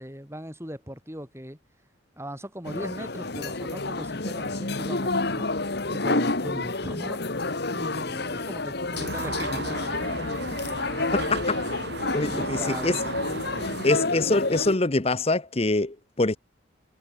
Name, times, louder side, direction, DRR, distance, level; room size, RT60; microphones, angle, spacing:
voice 1, 0.0-1.6 2.2-5.5 5.9-7.3 7.7-9.8 12.3-13.0 13.7-13.8, equal, 15° right, 6.3 m, -39 dB
sound 1, 2.6-14.8, left 3 dB, 50° left, 1.5 m, -29 dB
sound 2, 8.9-14.0, right 3 dB, 55° right, 4.7 m, -35 dB
voice 2, 12.1-13.0 13.8-16.4, left 2 dB, 30° left, 0.8 m, -24 dB
head